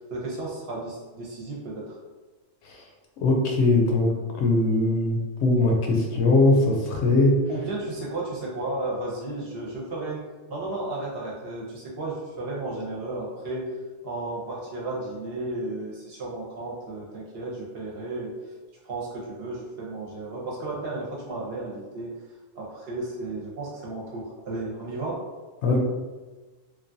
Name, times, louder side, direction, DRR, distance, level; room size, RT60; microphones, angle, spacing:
voice 1, 0.1-2.0 7.5-10.2 10.5-13.8 14.0-18.3 18.8-22.2 22.6-25.2, right 2 dB, 60° right, -4 dB, 0.8 m, -33 dB
voice 2, 3.2-4.1 4.4-7.4 25.6-25.8, left 2 dB, 70° left, 0 dB, 0.8 m, -21 dB
3.0 x 2.3 x 2.5 m, 1.3 s
omnidirectional pair, 1.3 m